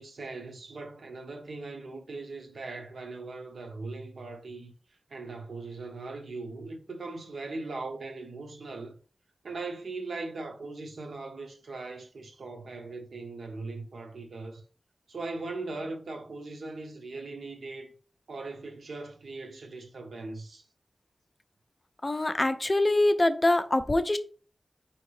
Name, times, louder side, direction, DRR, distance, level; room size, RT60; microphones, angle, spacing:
voice 1, 0.0-4.7 5.1-8.9 9.4-14.6 15.1-17.9 18.3-20.6, right 3 dB, 85° right, 0.7 m, -39 dB
voice 2, 22.0-24.2, left 2 dB, 25° left, 0.4 m, -24 dB
4.6 x 2.9 x 3.1 m
wide cardioid pair, 85°, 0 cm